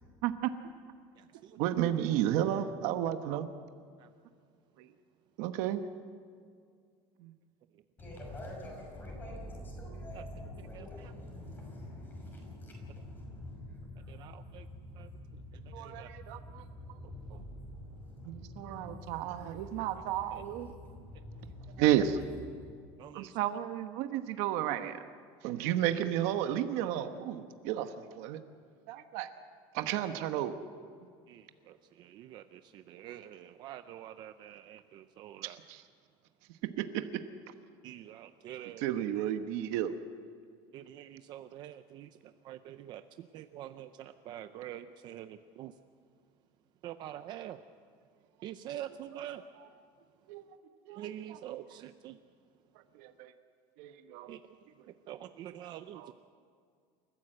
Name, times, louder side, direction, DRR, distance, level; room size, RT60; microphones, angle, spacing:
voice 1, 0.2-0.5 1.6-3.5 4.8-4.9 5.4-5.8 7.2-7.3 15.7-16.6 18.2-20.7 21.8-22.2 23.1-25.0 25.4-28.4 28.9-29.3 29.7-30.6 35.4-35.8 36.8-37.2 38.8-39.9 49.1-49.7 50.3-50.4 50.9-51.4 52.9-53.3 53.8-54.3 55.9-56.1, right 11 dB, 65° right, 8 dB, 1.1 m, -33 dB
voice 2, 8.0-22.3 22.5-22.8, left 1 dB, 15° left, 0 dB, 5.9 m, -46 dB
voice 3, 14.1-14.6 15.0-15.1 15.8-16.1 23.0-23.3 31.3-35.6 37.8-38.8 40.7-42.1 42.4-45.7 46.8-47.6 48.4-49.4 51.0-52.2 54.3-54.4 55.1-56.1, right 12 dB, 40° right, 10 dB, 0.6 m, -45 dB
28.5 x 14.5 x 7.9 m, 2.1 s
cardioid pair, 175°, 11 cm